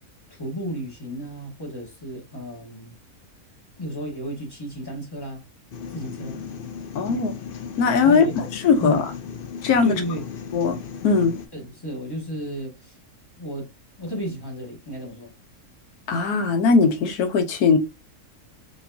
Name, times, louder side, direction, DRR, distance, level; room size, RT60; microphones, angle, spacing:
voice 1, 0.3-2.9 3.8-5.4 5.9-6.4 7.1-7.3 8.0-8.4 8.8-9.0 9.8-10.2 11.5-13.0 13.4-13.7 14.0-15.3, equal, 15° left, 1.5 m, -33 dB
sound 1, 5.7-11.5, left 7 dB, 60° left, 0.6 m, -36 dB
voice 2, 6.9-7.3 7.8-9.0 9.6-9.9 10.5-10.8 11.0-11.3 16.1-17.8, left 5 dB, 85° left, 1.3 m, -19 dB
5.0 x 3.0 x 2.6 m
omnidirectional pair, 1.6 m